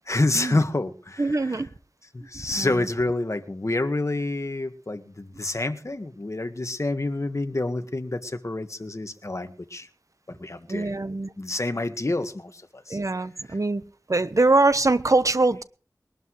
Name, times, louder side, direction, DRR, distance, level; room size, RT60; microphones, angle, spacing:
voice 1, 0.1-1.7 2.1-9.9 10.3-11.0 11.4-13.0 13.5-13.6, left 2 dB, 45° left, 1.6 m, -28 dB
voice 2, 1.2-1.7 2.5-2.7 10.7-11.3 12.9-13.8 14.1-15.6, right 2 dB, 50° right, 1.0 m, -22 dB
22.0 x 12.0 x 3.2 m
wide cardioid pair, 60°, 7 cm